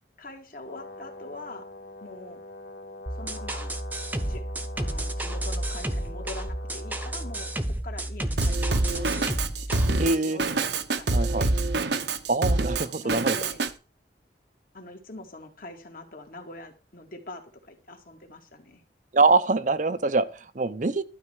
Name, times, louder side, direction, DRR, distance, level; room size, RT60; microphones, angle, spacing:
voice 1, 0.2-1.7 2.0-2.4 3.1-3.7 4.3-4.5 4.8-9.4 9.7-11.6 13.0-13.6 14.7-18.8, left 2 dB, 50° left, 2.2 m, -43 dB
Brass instrument, 0.6-7.7, left 1 dB, 80° left, 2.8 m, -44 dB
sound 1, 3.1-9.9, right 1 dB, 10° right, 0.9 m, -31 dB
Drum kit, 8.4-13.7, right 2 dB, 75° right, 1.0 m, -25 dB
voice 2, 10.0-10.4 11.1-11.5 12.3-13.4 19.1-21.0, right 3 dB, 45° right, 0.7 m, -24 dB
12.5 x 4.4 x 8.2 m
head